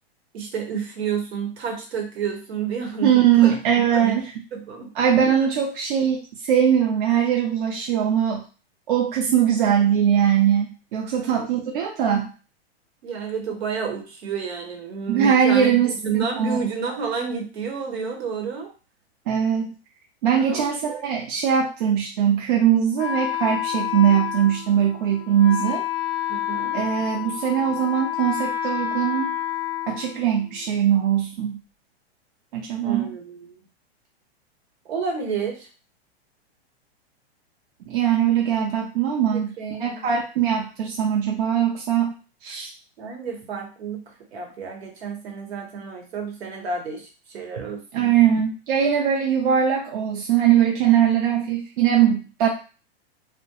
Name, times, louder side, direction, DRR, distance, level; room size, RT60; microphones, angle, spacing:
voice 1, 0.3-3.6 3.9-4.2 4.5-4.9 11.2-11.8 13.0-18.7 20.4-21.1 26.3-26.8 32.8-33.6 34.8-35.7 39.3-40.1 43.0-48.1, right 6 dB, 75° right, 2 dB, 1.0 m, -30 dB
voice 2, 3.0-4.3 5.0-8.4 8.9-12.3 15.1-15.9 16.4-16.6 19.3-19.7 20.2-25.8 26.7-29.4 29.9-31.6 32.5-33.1 37.9-39.5 39.8-42.1 42.4-42.7 47.6-47.7 47.9-52.5, right 9 dB, 55° right, 0 dB, 0.5 m, -21 dB
Wind instrument woodwind instrument, 23.0-30.7, left 11 dB, 35° left, 0.4 m, -29 dB
2.3 x 2.1 x 2.8 m, 0.35 s
hypercardioid pair, 145°, 32 cm